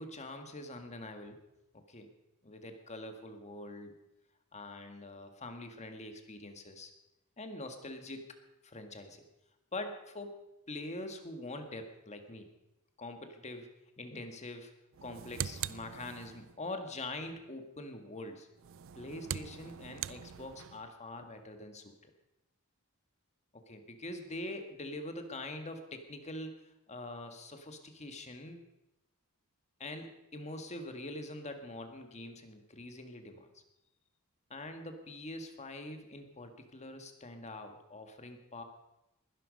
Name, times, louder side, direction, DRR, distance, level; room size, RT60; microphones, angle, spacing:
voice 1, 0.0-1.4 1.9-2.1 2.4-3.9 4.5-6.9 7.4-8.3 8.6-9.2 9.7-10.4 10.7-12.5 13.0-13.7 14.0-14.7 15.0-18.5 19.0-22.1 23.7-26.5 26.9-28.6 29.8-33.6 34.5-38.6, left 2 dB, 30° left, 6 dB, 1.8 m, -44 dB
sound 1, 14.9-16.6 18.6-20.9, right 10 dB, 65° right, 0.4 m, -42 dB
20.5 x 11.5 x 5.4 m, 0.92 s
head